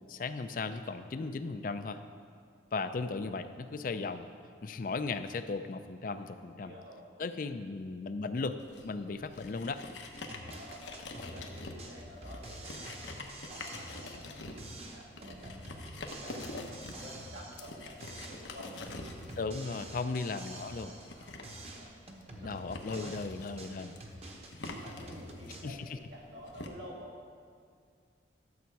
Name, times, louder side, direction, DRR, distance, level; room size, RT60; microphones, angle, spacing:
voice 1, 0.1-2.0 2.7-4.3 4.6-6.7 7.2-9.8 19.4-20.9 22.4-23.9 25.6-26.0, left 4 dB, 50° left, 10 dB, 0.4 m, -36 dB
voice 2, 6.6-7.4 10.3-13.2 13.5-15.8 16.2-18.7 19.2-20.1 20.7-22.0 22.4-23.7 24.0-24.2 24.5-27.3, equal, 80° right, -5 dB, 2.3 m, -52 dB
sound 1, 8.6-26.7, left 2 dB, 90° left, 1.0 m, -46 dB
sound 2, 10.1-14.3 14.6-17.7 18.0-21.2 21.4-25.6, right 1 dB, 35° right, 0.9 m, -47 dB
12.0 x 7.2 x 4.7 m, 2.2 s
head